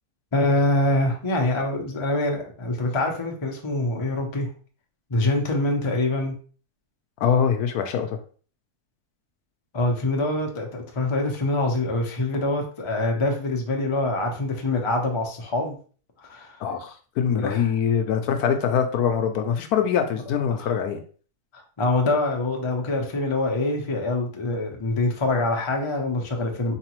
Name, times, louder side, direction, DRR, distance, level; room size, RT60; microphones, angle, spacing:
voice 1, 0.3-4.5 5.1-6.4 9.7-15.8 16.2-16.6 17.3-17.7 20.5-20.7 21.5-26.7, left 2 dB, 35° left, 1 dB, 0.4 m, -25 dB
voice 2, 7.2-8.2 16.6-21.0, left 7 dB, 75° left, 6 dB, 1.1 m, -23 dB
4.0 x 3.3 x 3.0 m, 0.41 s
omnidirectional pair, 1.7 m